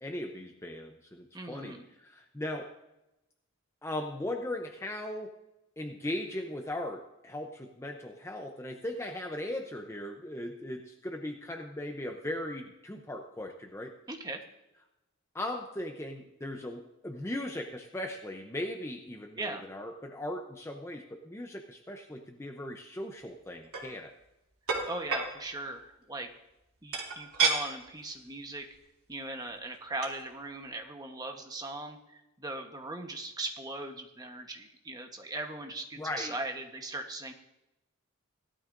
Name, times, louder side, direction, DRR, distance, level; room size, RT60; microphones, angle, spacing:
voice 1, 0.0-2.7 3.8-5.3 5.8-13.9 15.3-24.1 36.0-36.4, left 1 dB, 10° left, 3 dB, 0.6 m, -38 dB
voice 2, 1.3-1.8 14.1-14.4 19.4-19.6 24.8-26.3 26.8-28.6 29.1-37.3, right 2 dB, 15° right, 4 dB, 1.0 m, -39 dB
sound 1, 23.5-23.9 24.7-25.3 26.9-27.6 28.1-28.2 28.5-28.8 29.7-29.8 30.0-30.2, right 5 dB, 85° right, 2.8 m, -29 dB
17.0 x 12.5 x 2.6 m, 0.93 s
head